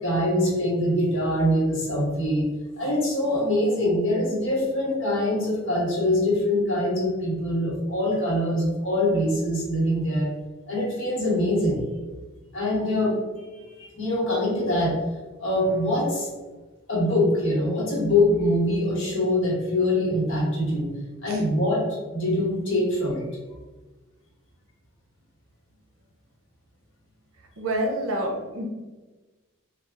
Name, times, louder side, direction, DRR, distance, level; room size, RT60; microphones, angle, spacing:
voice 1, 0.0-2.5 2.8-10.3 10.7-11.9 12.5-15.0 15.4-16.3 16.9-20.9 21.2-23.3, left 1 dB, 65° left, -4 dB, 1.2 m, -24 dB
voice 2, 27.6-28.7, right 1 dB, 80° right, 1 dB, 0.7 m, -27 dB
3.4 x 2.3 x 3.4 m, 1.2 s
head